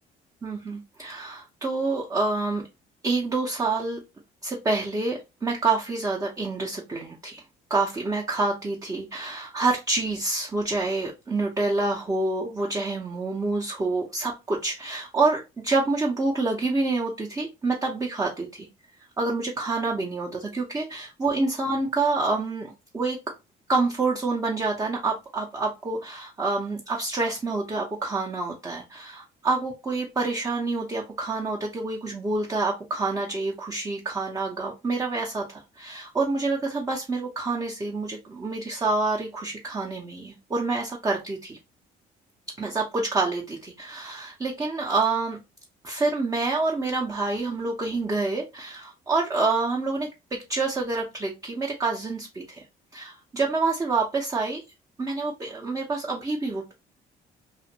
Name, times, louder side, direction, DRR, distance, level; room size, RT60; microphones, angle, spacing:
voice 1, 0.4-2.6 3.0-4.0 4.4-7.4 7.7-18.7 19.2-23.2 23.7-41.6 42.6-45.4 45.8-50.1 50.5-52.6 52.9-54.6 55.0-56.7, right 3 dB, 20° right, -2 dB, 0.7 m, -27 dB
2.5 x 2.5 x 2.8 m, 0.25 s
cardioid pair, 110°, 17 cm